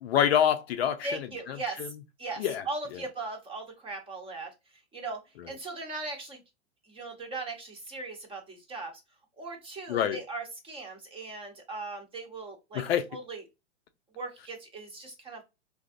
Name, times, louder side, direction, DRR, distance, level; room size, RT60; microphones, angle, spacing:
voice 1, 0.0-1.1 1.5-1.9 2.4-2.6 9.9-10.2 12.7-13.0, left 9 dB, 55° left, 0.6 m, -26 dB
voice 2, 1.0-1.9 2.2-4.5 4.9-6.4 6.9-8.9 9.4-12.8 13.1-13.4 14.1-15.4, right 3 dB, 15° right, 0.9 m, -38 dB
3.9 x 2.7 x 2.5 m
hypercardioid pair, 125°, 36 cm